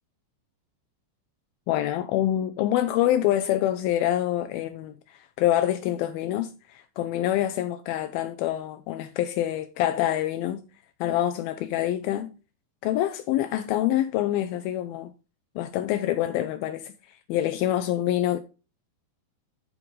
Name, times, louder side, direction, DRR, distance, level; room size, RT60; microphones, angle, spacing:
voice 1, 1.7-10.6 11.0-12.3 12.8-15.1 15.6-16.9 17.3-18.4, left 13 dB, 85° left, 2.2 m, -26 dB
13.0 x 4.6 x 3.7 m
omnidirectional pair, 4.8 m